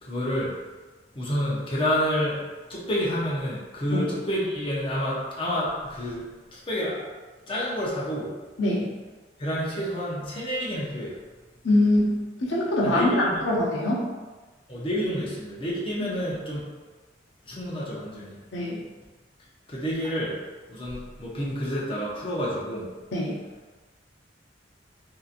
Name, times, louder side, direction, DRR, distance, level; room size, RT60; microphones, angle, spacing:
voice 1, 0.0-0.5 1.1-2.4 2.7-6.2 6.5-7.0 7.5-8.3 9.4-11.2 12.8-13.4 14.7-16.6 17.5-18.4 19.7-20.4 20.7-22.9, equal, 30° left, -7 dB, 0.6 m, -29 dB
voice 2, 11.6-12.1 12.5-13.1 13.4-14.1 18.5-18.8 23.1-23.4, left 1 dB, 80° left, -4 dB, 0.6 m, -23 dB
2.7 x 2.5 x 2.5 m, 1.3 s
head